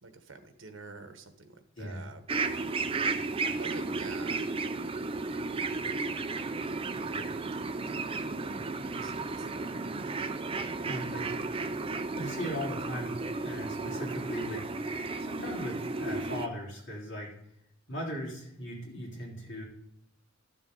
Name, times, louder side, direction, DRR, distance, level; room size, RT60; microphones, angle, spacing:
voice 1, 0.0-2.8 3.6-4.4 5.1-5.7 7.2-8.6 8.9-10.0, right 3 dB, 75° right, 7 dB, 1.2 m, -49 dB
sound 1, 2.3-16.5, right 3 dB, 30° right, 0.5 m, -34 dB
voice 2, 10.8-13.2 13.4-17.3 17.9-19.6, equal, 65° left, -4 dB, 3.7 m, -39 dB
12.5 x 7.2 x 3.9 m, 0.78 s
head